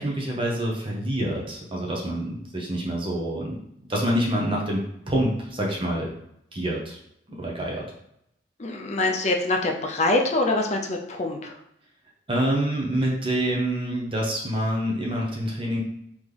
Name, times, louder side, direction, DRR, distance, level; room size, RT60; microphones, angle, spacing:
voice 1, 0.0-4.8 5.1-6.1 6.5-7.0 7.4-7.8 12.3-15.8, right 1 dB, 30° right, -3 dB, 0.9 m, -26 dB
voice 2, 8.6-11.5, left 2 dB, 40° left, 2 dB, 0.5 m, -24 dB
3.9 x 3.0 x 3.3 m, 0.77 s
head